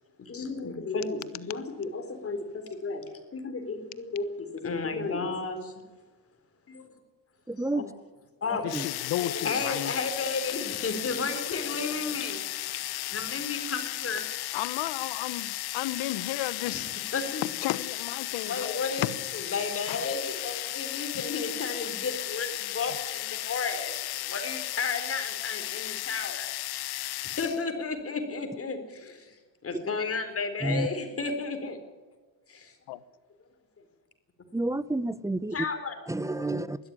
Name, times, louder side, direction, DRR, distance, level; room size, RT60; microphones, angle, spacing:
voice 1, 0.3-3.0 3.3-5.7 6.7-6.9 7.7-7.8 8.4-8.7 9.1-12.4 13.1-14.2 16.3-16.4 16.7-16.8 17.1-17.4 18.5-19.1 19.3-24.0 24.2-26.5 27.0-29.3 29.6-31.8 32.5-32.7 35.5-36.0, left 4 dB, 35° left, 4.0 m, -33 dB
voice 2, 7.5-7.9 8.5-8.9 30.6-30.9 34.5-35.6 36.1-36.8, right 2 dB, 10° right, 0.6 m, -30 dB
voice 3, 8.6-9.9 14.5-16.9 17.4-19.1 19.9-20.1 21.1-21.3 22.9-23.0 32.9-33.0, left 15 dB, 80° left, 1.2 m, -33 dB
sound 1, 8.7-27.6, left 16 dB, 65° left, 0.9 m, -35 dB
20.5 x 12.5 x 9.8 m
cardioid pair, 110°, 41 cm